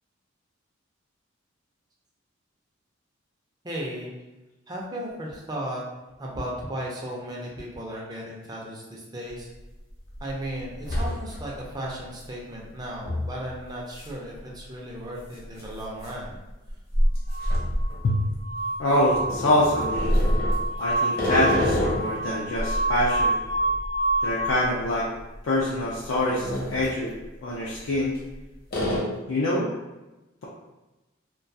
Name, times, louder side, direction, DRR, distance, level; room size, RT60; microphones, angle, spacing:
voice 1, 3.6-4.1 4.7-5.8 6.2-9.5 10.2-16.4, right 1 dB, 20° right, -3 dB, 0.5 m, -35 dB
sound 1, 9.3-9.4 9.9-10.3 10.6-11.6 12.0-12.1 13.1-13.3 13.9-14.1 14.4-14.5 15.4-18.5 19.1-22.2 22.6-24.9 25.2-25.4 25.9-26.9 27.8-28.3 28.7-29.0, equal, 50° left, 0.8 m, -27 dB
sound 2, 17.3-24.5, right 2 dB, 80° right, 0.4 m, -28 dB
voice 2, 18.8-20.1 20.8-23.4 24.2-25.1 25.4-27.1 27.4-28.1 29.3-29.7, left 1 dB, 70° left, -6 dB, 0.4 m, -25 dB
2.3 x 2.2 x 2.6 m, 1.0 s
head